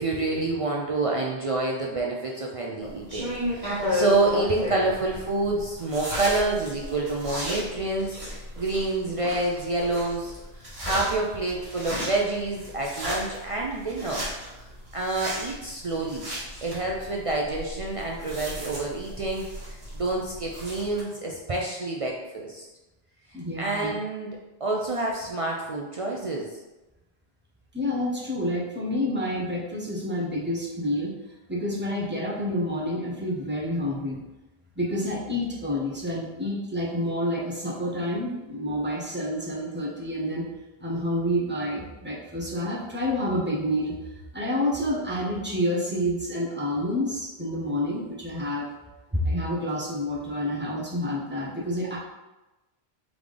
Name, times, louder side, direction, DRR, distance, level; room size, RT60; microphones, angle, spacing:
voice 1, 0.0-14.2 14.5-16.3 16.6-22.7 23.3-24.3 24.6-26.5, right 2 dB, 50° right, -2 dB, 0.4 m, -28 dB
sound 1, 2.8-21.0, left 1 dB, 35° right, 1.4 m, -34 dB
voice 2, 23.3-24.0 27.7-31.1 31.5-34.2 34.8-40.5 40.8-48.7 49.1-52.0, left 1 dB, 10° right, -5 dB, 0.9 m, -28 dB
3.7 x 3.6 x 3.3 m, 1.1 s
omnidirectional pair, 1.1 m